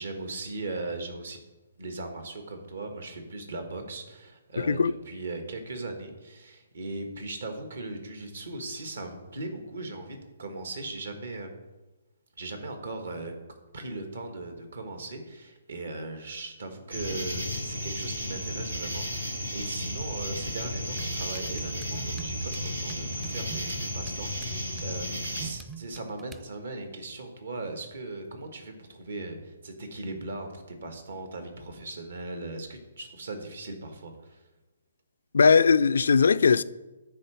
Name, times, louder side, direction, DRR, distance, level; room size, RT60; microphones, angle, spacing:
voice 1, 0.0-1.4 1.8-11.5 12.4-13.3 13.7-34.4, right 2 dB, 65° right, 1.6 m, -38 dB
voice 2, 4.6-4.9 35.3-36.6, left 5 dB, 65° left, 0.3 m, -19 dB
sound 1, 16.9-25.5, equal, 90° right, 2.0 m, -33 dB
sound 2, 21.0-26.5, right 6 dB, 10° right, 0.4 m, -45 dB
9.5 x 3.9 x 6.7 m
figure-of-eight pair, 130°, 0 cm